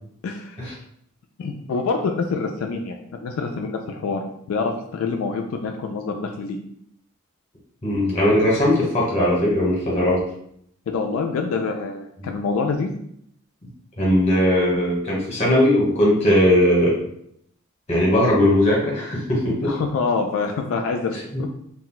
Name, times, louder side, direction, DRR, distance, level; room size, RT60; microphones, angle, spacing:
voice 1, 0.2-0.6 1.4-6.6 10.9-12.9 19.6-21.5, left 4 dB, 80° left, 3 dB, 0.3 m, -26 dB
voice 2, 7.8-10.2 12.2-12.3 14.0-16.9 17.9-19.7, left 1 dB, 30° left, -4 dB, 1.0 m, -19 dB
2.4 x 2.1 x 3.9 m, 0.70 s
head